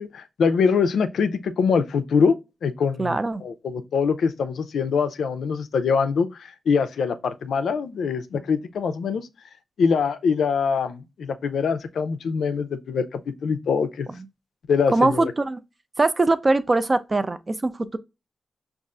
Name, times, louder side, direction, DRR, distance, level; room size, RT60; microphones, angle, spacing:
voice 1, 0.0-2.3 2.6-9.3 9.8-14.1 14.7-15.3, left 5 dB, 85° left, 0.3 m, -23 dB
voice 2, 3.0-3.4 14.2-14.3 14.9-15.6 16.0-18.0, right 2 dB, 35° right, 0.3 m, -22 dB
5.1 x 2.4 x 2.3 m
cardioid pair, 55°, 0 cm